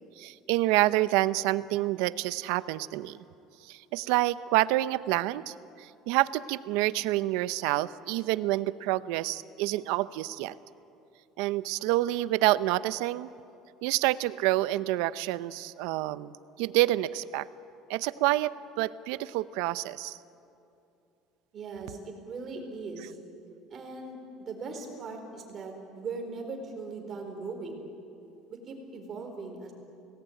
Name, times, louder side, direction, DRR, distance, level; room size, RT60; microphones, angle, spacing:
voice 1, 0.2-3.2 3.6-10.5 11.4-13.3 13.8-17.5 17.9-20.2, right 17 dB, 80° right, 16 dB, 0.7 m, -28 dB
voice 2, 21.5-23.2 23.7-27.8 28.5-29.7, right 4 dB, 30° right, 3 dB, 4.3 m, -39 dB
29.0 x 19.0 x 9.3 m, 2.7 s
cardioid pair, 170°, 0 cm